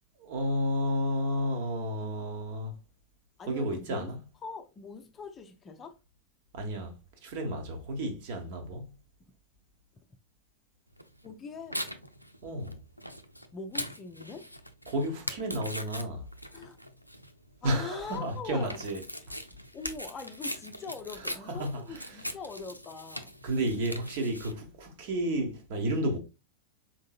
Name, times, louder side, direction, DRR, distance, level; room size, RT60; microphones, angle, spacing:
voice 1, 0.2-2.8 3.5-4.2 6.5-7.0 7.2-9.0 12.4-12.8 14.9-16.3 17.6-19.0 19.3-19.4 21.5-22.2 23.4-26.2, equal, 50° right, 1.2 m, -32 dB
voice 2, 3.4-4.1 4.4-6.0 11.2-11.8 13.5-14.5 16.5-16.8 17.6-18.8 19.7-23.3, left 4 dB, 25° left, 0.5 m, -42 dB
Tearing, 11.0-24.5, equal, 90° left, 0.4 m, -41 dB
4.5 x 3.7 x 2.4 m
figure-of-eight pair, 90°, 0 cm